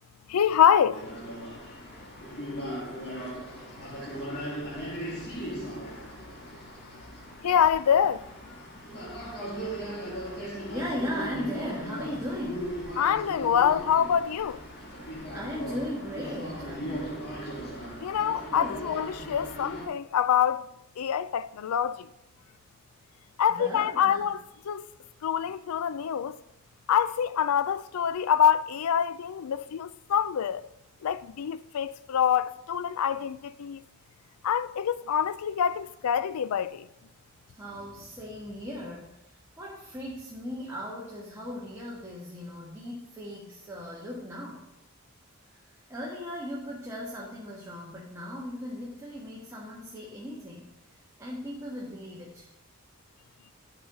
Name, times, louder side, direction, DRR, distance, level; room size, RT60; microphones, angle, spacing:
voice 1, 0.3-1.0 7.4-8.2 13.0-14.6 18.0-20.7 21.0-22.1 23.4-24.9 25.2-26.4 26.9-30.7 31.0-33.8 34.4-36.9, left 8 dB, 90° left, 0.4 m, -25 dB
sound 1, 0.9-19.9, equal, 50° left, 2.1 m, -38 dB
voice 2, 10.7-12.8 15.3-17.1 18.5-18.9 23.5-24.2 37.6-44.7 45.9-50.7 51.2-52.4, equal, 15° right, 1.5 m, -37 dB
10.5 x 5.5 x 4.9 m
head